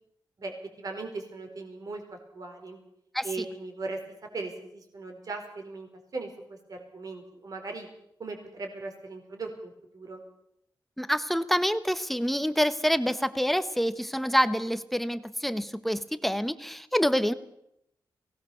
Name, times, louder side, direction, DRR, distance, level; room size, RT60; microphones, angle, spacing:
voice 1, 0.4-2.8 3.2-4.0 4.3-7.9 8.2-10.2, right 3 dB, 50° right, 3 dB, 4.4 m, -38 dB
voice 2, 11.0-17.3, equal, ahead, 12 dB, 1.0 m, -27 dB
23.0 x 18.0 x 7.0 m, 0.78 s
wide cardioid pair, 145°, 8 cm